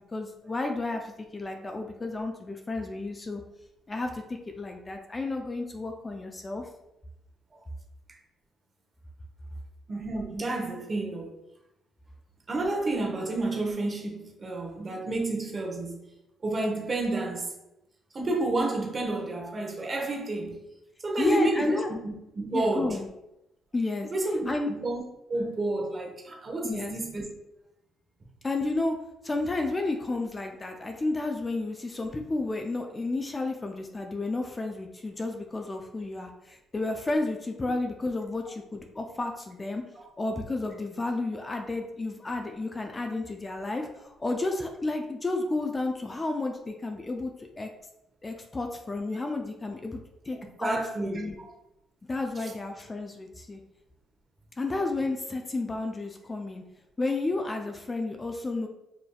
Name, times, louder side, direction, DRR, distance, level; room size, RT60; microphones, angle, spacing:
voice 1, 0.1-3.4 3.9-6.7 21.2-21.9 22.5-23.1 23.7-24.1 24.5-24.7 26.6-27.0 28.4-29.0 29.2-39.8 40.2-47.7 48.2-50.0 50.2-51.4 52.1-53.6 54.6-56.6 57.0-58.7, left 2 dB, 25° left, 0.4 m, -31 dB
voice 2, 9.9-11.4 12.5-16.0 16.4-17.5 18.1-20.6 21.0-23.0 24.1-25.0 25.3-27.2 40.0-40.1 50.6-51.5 52.4-52.5, right 2 dB, 35° right, 1.0 m, -30 dB
5.0 x 2.6 x 2.3 m
cardioid pair, 80°, 0 cm